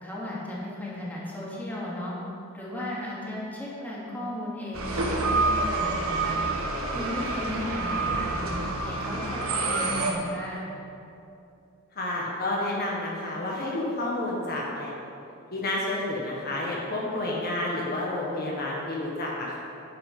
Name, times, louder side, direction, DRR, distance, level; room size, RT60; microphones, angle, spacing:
voice 1, 0.0-2.2 2.5-6.4 6.9-10.7, left 1 dB, 10° left, -7 dB, 2.7 m, -35 dB
sound 1, 4.7-10.1, right 3 dB, 70° right, 1.7 m, -27 dB
voice 2, 11.9-14.9 15.5-19.6, left 1 dB, 45° left, -4 dB, 1.6 m, -30 dB
10.5 x 9.5 x 5.6 m, 2.8 s
head